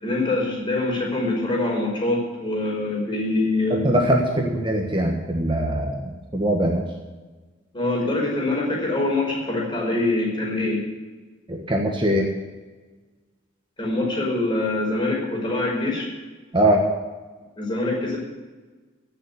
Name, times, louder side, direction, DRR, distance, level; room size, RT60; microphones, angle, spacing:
voice 1, 0.0-3.9 4.3-4.5 7.7-10.8 13.8-16.1 17.6-18.2, left 2 dB, 25° left, -2 dB, 5.0 m, -24 dB
voice 2, 3.7-6.8 11.5-12.3 16.5-16.8, right 1 dB, 25° right, 1 dB, 1.5 m, -22 dB
16.0 x 7.0 x 9.5 m, 1.3 s
head